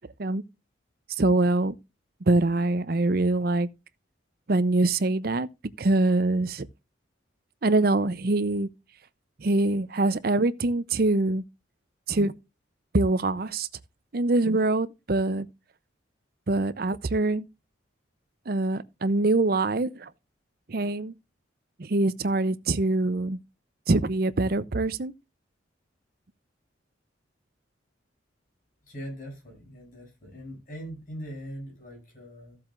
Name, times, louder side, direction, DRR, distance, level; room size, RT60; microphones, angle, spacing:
voice 1, 1.2-1.7 2.3-3.7 4.5-5.5 5.8-6.7 7.6-8.7 9.4-11.4 12.1-12.3 12.9-13.7 14.1-15.5 16.5-17.4 18.5-20.1 20.7-21.1 21.8-23.4 23.9-25.1, right 2 dB, 50° right, 0.6 m, -24 dB
voice 2, 28.8-32.6, equal, 45° left, 7.2 m, -41 dB
15.0 x 7.6 x 2.5 m
head